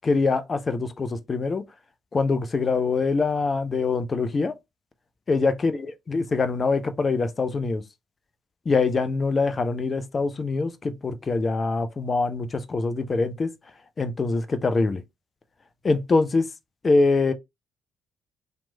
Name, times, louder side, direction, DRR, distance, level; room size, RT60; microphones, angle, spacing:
voice 1, 0.0-1.6 2.1-4.5 5.3-5.7 6.1-7.8 8.7-13.5 14.0-15.0 15.8-16.5 16.8-17.3, left 3 dB, 30° left, 0.4 m, -24 dB
2.9 x 2.1 x 2.7 m
figure-of-eight pair, 45°, 0 cm